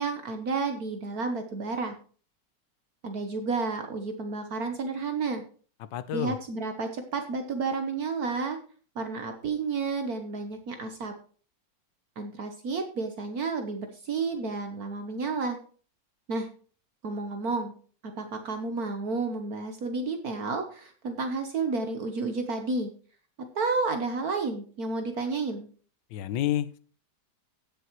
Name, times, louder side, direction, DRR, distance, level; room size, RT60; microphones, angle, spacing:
voice 1, 0.0-1.9 3.0-5.4 6.1-8.6 8.9-11.1 12.2-15.6 16.3-16.5 17.0-17.7 18.2-22.9 23.5-25.7, right 4 dB, 60° right, 6 dB, 1.5 m, -31 dB
voice 2, 5.8-6.4 26.1-26.8, left 11 dB, 85° left, 14 dB, 1.5 m, -29 dB
16.5 x 7.0 x 3.1 m, 0.40 s
omnidirectional pair, 1.9 m